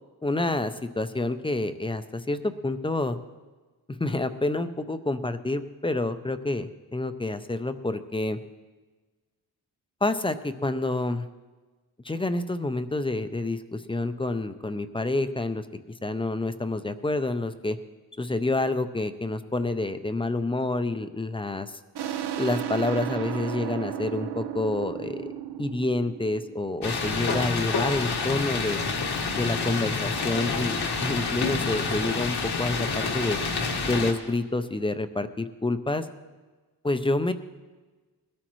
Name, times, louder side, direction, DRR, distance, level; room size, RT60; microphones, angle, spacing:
voice 1, 0.2-3.2 4.0-8.4 10.0-11.3 12.0-15.6 16.0-17.8 18.2-21.7 22.4-25.3 25.6-28.8 29.3-33.4 33.8-36.1 36.8-37.3, left 2 dB, 15° left, 10 dB, 0.4 m, -28 dB
sound 1, 21.9-27.3, right 10 dB, 85° right, 0.8 m, -34 dB
sound 2, 26.8-34.1, left 4 dB, 75° left, 1.6 m, -28 dB
21.5 x 13.0 x 3.1 m, 1.3 s
wide cardioid pair, 160°, 39 cm